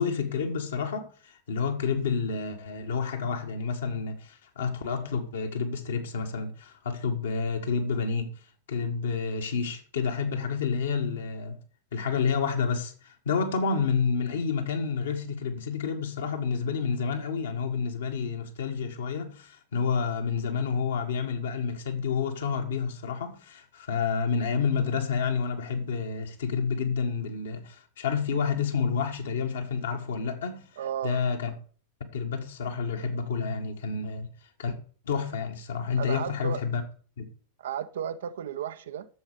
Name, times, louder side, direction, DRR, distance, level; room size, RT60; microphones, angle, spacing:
voice 1, 0.0-8.3 8.7-11.6 11.9-30.7 31.0-31.5 32.1-34.3 34.6-34.8 35.1-36.8 37.2-37.3, left 5 dB, 65° left, 1.7 m, -29 dB
voice 2, 30.8-31.2 36.0-36.6 37.6-39.1, right 9 dB, 60° right, 0.7 m, -33 dB
10.5 x 7.4 x 4.8 m
figure-of-eight pair, 90°, 0 cm